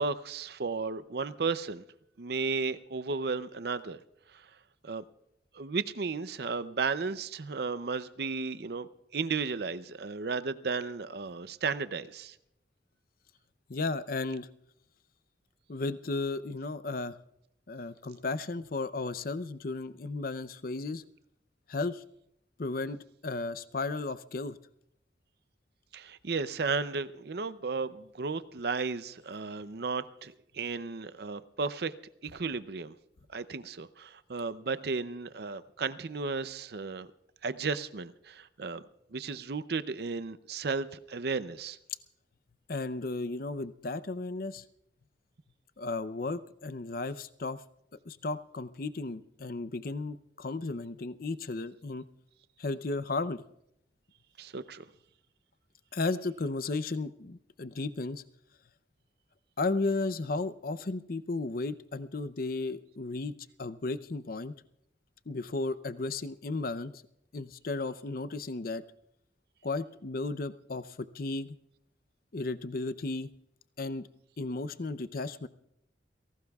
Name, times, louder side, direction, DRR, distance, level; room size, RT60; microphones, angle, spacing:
voice 1, 0.0-1.8 2.2-4.0 4.3-4.4 4.8-5.0 5.5-12.4 25.9-31.9 32.2-32.9 33.3-37.1 37.4-38.8 39.1-41.8 54.4-54.8, right 4 dB, 60° right, 13 dB, 0.6 m, -34 dB
voice 2, 13.7-14.5 15.7-17.2 17.7-21.0 21.7-22.0 22.6-23.0 23.2-24.6 42.7-44.6 45.8-47.6 48.1-52.0 52.6-53.4 55.9-58.2 59.6-63.3 63.6-64.5 65.3-67.0 67.3-68.8 69.6-71.6 72.3-73.3 73.8-74.1 74.4-75.5, left 3 dB, 55° left, 14 dB, 0.6 m, -34 dB
29.5 x 18.0 x 2.4 m, 0.77 s
head